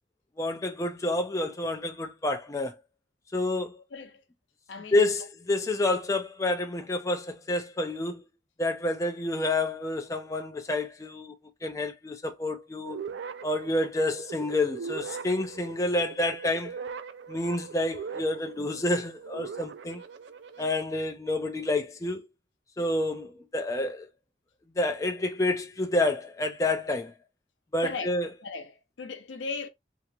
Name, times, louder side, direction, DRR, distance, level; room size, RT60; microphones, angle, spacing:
voice 1, 0.4-2.7 3.3-3.8 4.9-8.2 8.6-11.3 11.6-13.0 13.4-16.8 17.3-20.0 20.6-22.3 22.8-24.1 24.8-27.1 27.7-28.3, left 2 dB, 15° left, 0.4 m, -29 dB
voice 2, 3.9-4.2 4.7-5.0 27.8-28.1 28.4-29.7, left 4 dB, 80° left, 0.6 m, -37 dB
sound 1, 12.9-20.8, right 6 dB, 70° right, 0.3 m, -41 dB
2.8 x 2.8 x 2.3 m
head